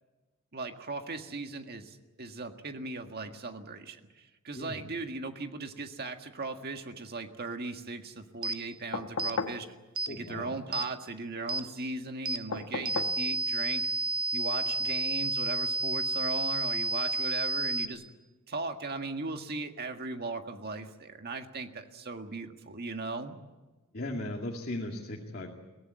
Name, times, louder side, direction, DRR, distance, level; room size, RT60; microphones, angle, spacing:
voice 1, 0.5-9.7 10.1-13.9 14.3-18.0 18.5-23.4, right 3 dB, 50° right, 5 dB, 1.8 m, -38 dB
voice 2, 4.6-4.9 10.1-10.5 23.9-25.5, left 1 dB, 45° left, -1 dB, 2.3 m, -37 dB
sound 1, 8.4-8.6 9.2-9.4 10.0-10.1 10.7-10.9 11.5-11.6 12.3-12.4 12.9-17.9, right 2 dB, 80° right, 1.3 m, -31 dB
sound 2, 8.9-9.7 12.5-13.2 14.8-14.9, left 4 dB, 75° left, 1.4 m, -35 dB
23.0 x 17.5 x 9.5 m, 1.2 s
head